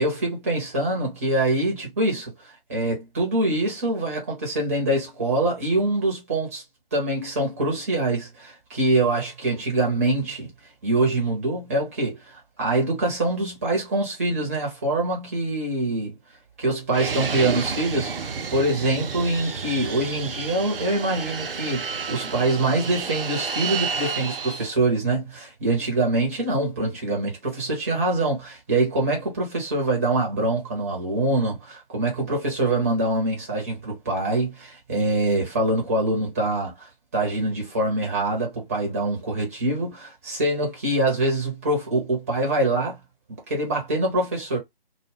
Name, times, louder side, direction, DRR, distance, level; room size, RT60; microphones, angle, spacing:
voice 1, 0.0-6.6 6.9-10.5 10.8-16.2 16.6-43.0 43.5-44.6, right 2 dB, 15° right, 0.7 m, -24 dB
Fixed-wing aircraft airplane, 16.9-24.7, right 5 dB, 70° right, 0.5 m, -31 dB
2.2 x 2.1 x 3.2 m
figure-of-eight pair, 150°, 30 cm